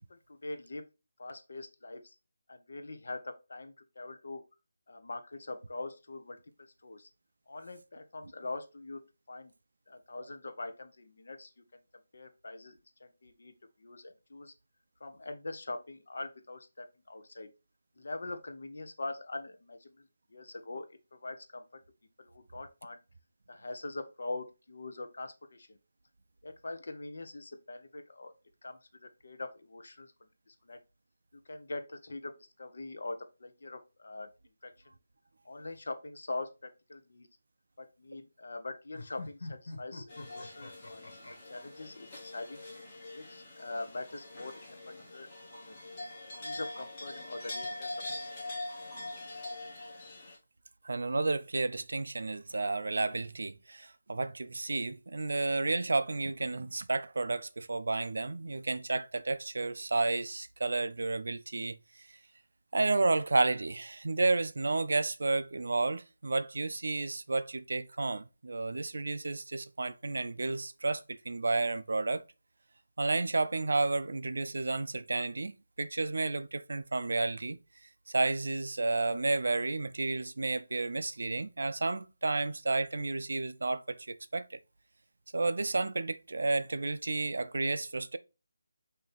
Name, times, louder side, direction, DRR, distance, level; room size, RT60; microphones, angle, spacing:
voice 1, 0.1-0.8 1.2-2.2 2.5-4.4 4.9-7.1 7.5-9.0 9.3-9.5 9.9-11.8 12.1-14.5 15.0-17.5 18.0-21.8 22.2-23.0 23.5-25.8 26.4-28.3 28.6-30.8 31.3-34.3 34.6-35.0 35.4-37.3 37.8-41.2 41.5-42.6 43.1-45.8 46.2-48.0 48.4-48.7, left 2 dB, 55° left, 0.8 m, -43 dB
sound 1, 38.9-41.4, left 2 dB, 75° left, 1.6 m, -43 dB
sound 2, 40.1-50.4, left 2 dB, 20° left, 1.2 m, -43 dB
voice 2, 50.8-61.8 62.7-72.2 73.0-77.6 78.1-84.6 85.3-88.2, right 3 dB, 70° right, 0.4 m, -31 dB
5.9 x 2.7 x 3.3 m
figure-of-eight pair, 175°, 0 cm